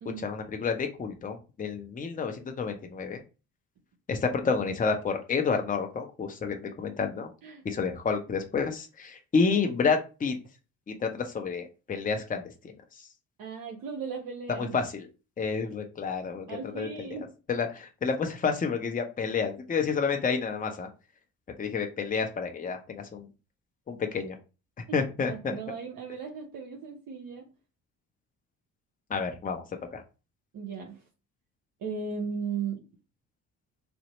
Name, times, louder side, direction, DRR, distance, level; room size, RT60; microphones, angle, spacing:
voice 1, 0.2-3.2 4.1-7.3 7.6-10.4 10.9-12.7 14.5-15.1 15.4-17.1 17.5-20.9 21.6-23.3 23.9-24.4 24.9-25.6 29.1-29.6 29.9-30.0, left 5 dB, 15° left, 4 dB, 0.7 m, -29 dB
voice 2, 13.4-14.8 16.5-17.3 24.9-27.5 30.5-31.0 31.8-32.8, right 5 dB, 45° right, 1 dB, 0.8 m, -37 dB
2.7 x 2.1 x 4.1 m, 0.31 s
figure-of-eight pair, 45°, 49 cm